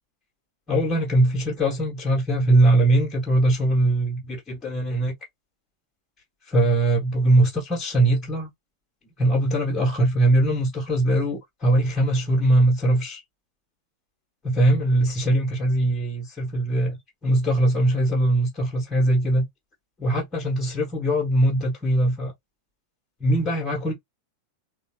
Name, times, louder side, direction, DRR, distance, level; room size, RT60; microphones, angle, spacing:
voice 1, 0.7-5.1 6.5-8.5 9.2-13.2 14.4-19.4 20.0-22.3 23.2-23.9, right 1 dB, 20° left, 1.2 m, -21 dB
3.7 x 2.3 x 2.8 m
figure-of-eight pair, 90°, 0 cm